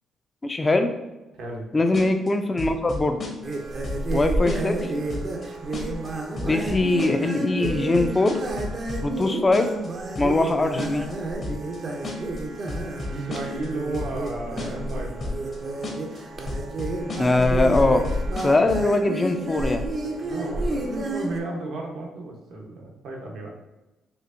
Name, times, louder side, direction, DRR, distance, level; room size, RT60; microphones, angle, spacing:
voice 1, 0.4-0.9 1.7-3.2 4.1-4.9 6.4-8.4 9.0-9.7 10.2-11.1 17.2-18.0 18.4-19.8, left 2 dB, 25° left, 6 dB, 0.4 m, -22 dB
voice 2, 1.3-1.6 13.1-15.3 20.2-23.5, right 2 dB, 75° right, 0 dB, 0.8 m, -33 dB
sound 1, 1.9-2.3 2.6-3.6 3.8-4.2 4.5-4.8 5.1-5.5 5.7-6.1 6.4-7.4 7.6-9.3 9.5-9.9 10.2-10.5 10.8-11.1 11.4-11.8 12.0-12.4 12.7-13.7 13.9-14.3 14.6-14.9 15.2-15.6 15.8-16.2 16.5-17.5 17.7-18.9, left 3 dB, 45° left, 0.9 m, -33 dB
Carnatic varnam by Badrinarayanan in Sri raaga, 3.4-21.4, right 2 dB, 45° right, 0.6 m, -30 dB
4.4 x 2.7 x 2.5 m, 1.0 s
cardioid pair, 90°, 0 cm